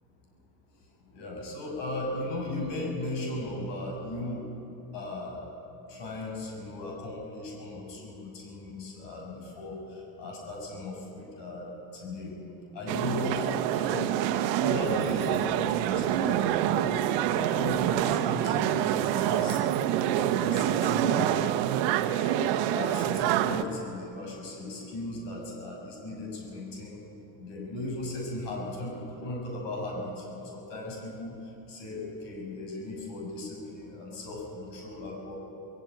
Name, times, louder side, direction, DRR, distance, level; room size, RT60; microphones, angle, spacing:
voice 1, 1.1-4.5 4.9-5.4 5.9-12.4 12.7-14.1 14.6-17.0 17.3-19.6 20.1-21.5 22.7-27.0 27.4-31.4 31.7-35.4, left 2 dB, 60° left, 0 dB, 6.8 m, -37 dB
sound 1, 12.9-23.6, right 11 dB, 60° right, 1.2 m, -26 dB
21.0 x 16.0 x 9.2 m, 2.9 s
hypercardioid pair, 85°, 49 cm